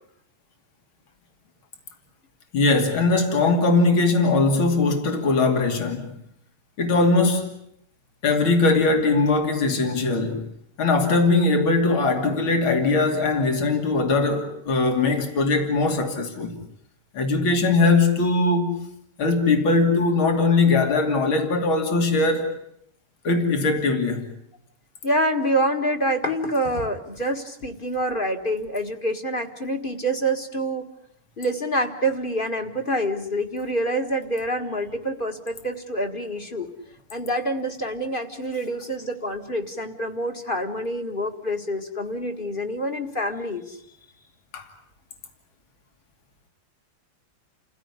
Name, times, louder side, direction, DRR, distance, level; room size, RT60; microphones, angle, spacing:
voice 1, 2.5-6.1 6.8-7.5 8.2-10.5 10.8-16.6 17.1-18.9 19.2-22.6 23.2-24.2 44.5-44.7, left 3 dB, 70° left, 3.5 m, -20 dB
voice 2, 25.0-30.9 31.4-36.7 37.1-43.8, right 1 dB, 25° left, 1.8 m, -26 dB
29.5 x 16.0 x 9.7 m
omnidirectional pair, 2.3 m